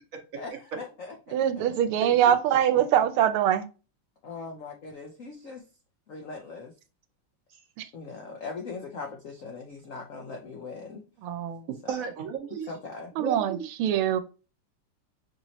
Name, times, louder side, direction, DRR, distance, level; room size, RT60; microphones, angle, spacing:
voice 1, 0.4-1.5 4.2-5.6 6.1-6.7 7.9-11.0 12.7-13.1, left 4 dB, 90° left, 2 dB, 0.7 m, -40 dB
voice 2, 1.3-3.7 7.8-7.9 11.2-11.7 13.2-14.2, right 10 dB, 85° right, 10 dB, 1.5 m, -23 dB
voice 3, 11.9-12.7 13.2-13.6, right 7 dB, 55° right, 2 dB, 1.0 m, -33 dB
5.9 x 2.9 x 2.7 m, 0.33 s
omnidirectional pair, 2.3 m